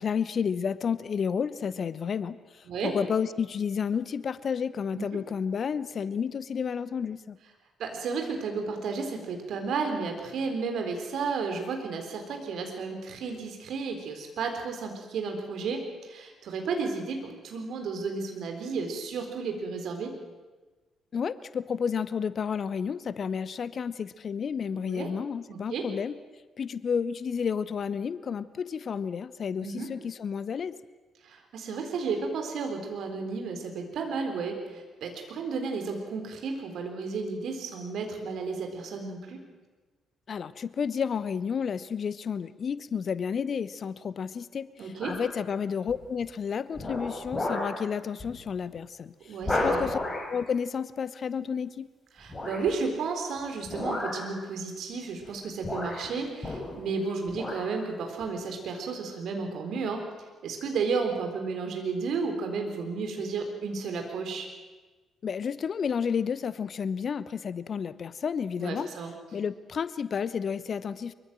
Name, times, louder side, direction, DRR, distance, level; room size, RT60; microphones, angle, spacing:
voice 1, 0.0-7.4 21.1-26.2 26.6-30.8 40.3-49.1 49.6-50.0 50.3-51.9 65.2-68.9 69.3-71.1, left 6 dB, 45° left, 17 dB, 0.8 m, -31 dB
voice 2, 7.8-20.1 24.7-25.1 25.5-25.9 29.6-29.9 31.2-39.4 44.8-45.1 49.2-49.8 52.2-60.0 60.4-64.5 68.6-69.1, right 4 dB, 55° right, 4 dB, 4.0 m, -33 dB
sound 1, 45.0-45.4 45.9-46.2 46.8-47.8 48.2-48.4 48.7-48.8 49.4-50.3 52.3-52.7 53.7-54.3 55.2-55.3 55.6-57.0 57.3-57.7 58.2-58.3, left 2 dB, 20° left, 6.8 m, -32 dB
24.0 x 23.0 x 7.6 m, 1.3 s
figure-of-eight pair, 40°, 0 cm